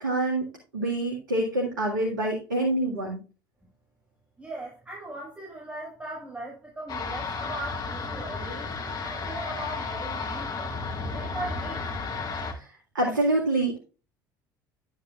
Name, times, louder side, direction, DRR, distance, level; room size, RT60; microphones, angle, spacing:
voice 1, 0.0-3.2 12.5-12.6 12.9-13.8, right 1 dB, 75° right, -1 dB, 2.0 m, -26 dB
voice 2, 4.4-10.7 11.1-11.9, right 1 dB, 10° right, -5 dB, 5.4 m, -39 dB
sound 1, 6.9-12.5, left 4 dB, 40° left, 1.9 m, -33 dB
11.5 x 8.7 x 2.4 m, 0.34 s
figure-of-eight pair, 60°, 11 cm